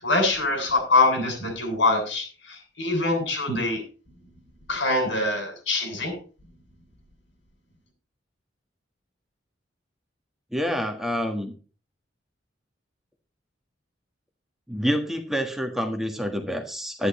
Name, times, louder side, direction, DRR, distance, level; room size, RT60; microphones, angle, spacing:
voice 1, 0.0-3.8 4.7-6.1, left 2 dB, 85° left, 3 dB, 7.4 m, -24 dB
voice 2, 10.5-11.5 14.7-17.1, equal, ahead, 4 dB, 1.5 m, -27 dB
11.0 x 10.5 x 4.3 m, 0.36 s
head